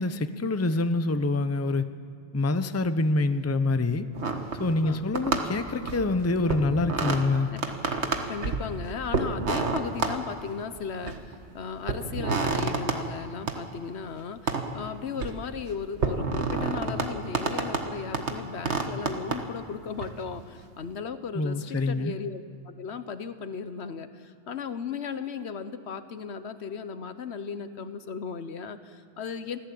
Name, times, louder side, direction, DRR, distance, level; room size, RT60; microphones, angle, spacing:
voice 1, 0.0-1.8 2.3-4.1 4.6-7.5 21.3-22.1, left 2 dB, 15° left, 10 dB, 0.7 m, -26 dB
sound 1, 4.1-4.9 5.1-6.1 6.5-7.2 7.6-8.7 9.1-10.1 10.8-11.4 11.9-13.0 13.5-13.6 14.5-14.6 15.0-15.4 16.0-17.1 17.3-17.9 18.1-18.3 18.7-19.4 20.0-20.1, right 4 dB, 75° right, 1.8 m, -28 dB
voice 2, 7.5-29.6, left 6 dB, 70° left, 11 dB, 1.2 m, -36 dB
24.5 x 16.0 x 8.6 m, 2.2 s
omnidirectional pair, 1.2 m